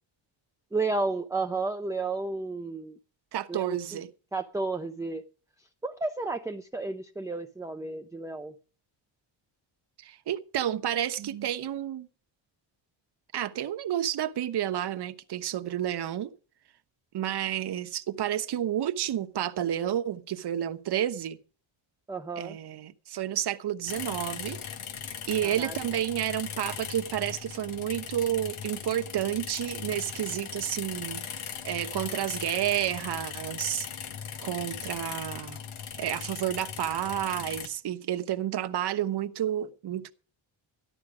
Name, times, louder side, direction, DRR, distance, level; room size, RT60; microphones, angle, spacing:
voice 1, 0.7-3.0 3.5-4.0 4.3-5.2 5.6-8.5 22.1-22.6 25.4-25.8, right 3 dB, 5° right, 0.5 m, -32 dB
voice 2, 3.3-4.1 10.0-12.1 13.3-16.3 17.1-21.4 22.4-24.6 25.1-31.2 31.6-33.9 34.4-35.6 36.0-40.1, right 11 dB, 55° right, 1.0 m, -30 dB
sound 1, 23.9-37.7, left 8 dB, 80° left, 1.4 m, -38 dB
13.5 x 11.0 x 4.9 m
cardioid pair, 150°, 48 cm